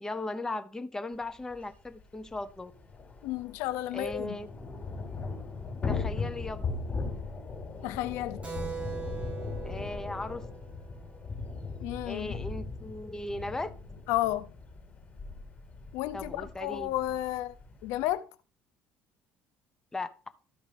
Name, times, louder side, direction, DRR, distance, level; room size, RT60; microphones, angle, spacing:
voice 1, 0.0-2.7 3.9-4.5 5.9-6.7 9.6-10.5 12.0-13.7 16.1-16.9 19.9-20.1, left 2 dB, 10° left, 0.7 m, -37 dB
Thunder / Rain, 1.5-1.6 1.9-2.0 2.3-18.1, left 4 dB, 30° left, 4.0 m, -39 dB
voice 2, 3.2-4.4 7.8-8.4 11.8-12.4 14.1-14.5 15.9-17.5 17.8-18.2, left 15 dB, 85° left, 0.6 m, -32 dB
Keyboard (musical), 8.4-12.5, right 6 dB, 25° right, 2.1 m, -43 dB
13.5 x 5.2 x 3.4 m
cardioid pair, 120°, 5 cm